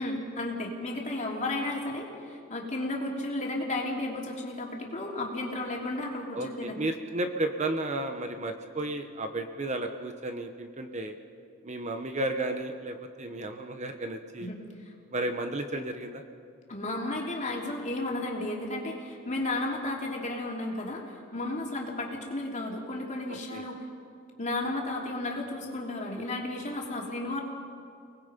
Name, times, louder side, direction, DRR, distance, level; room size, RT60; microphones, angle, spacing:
voice 1, 0.0-6.8 14.4-14.9 16.7-23.9 24.4-27.4, left 2 dB, 35° left, -1 dB, 3.2 m, -33 dB
voice 2, 6.3-11.2 11.6-14.5 15.1-16.2 23.5-23.7, right 2 dB, 35° right, 6 dB, 1.1 m, -33 dB
30.0 x 20.0 x 5.3 m, 2.5 s
head